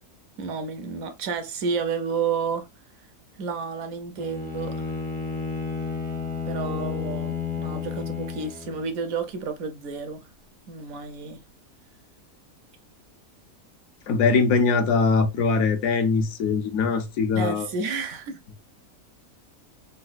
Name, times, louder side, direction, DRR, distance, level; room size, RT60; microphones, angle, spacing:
voice 1, 0.4-2.7 3.4-4.9 6.5-10.2 10.7-11.4 17.3-18.4, right 5 dB, 70° right, 1.0 m, -30 dB
Bowed string instrument, 4.2-9.0, left 6 dB, 15° left, 0.3 m, -31 dB
voice 2, 14.1-17.7, left 4 dB, 70° left, 1.0 m, -22 dB
3.9 x 2.2 x 2.3 m
omnidirectional pair, 1.6 m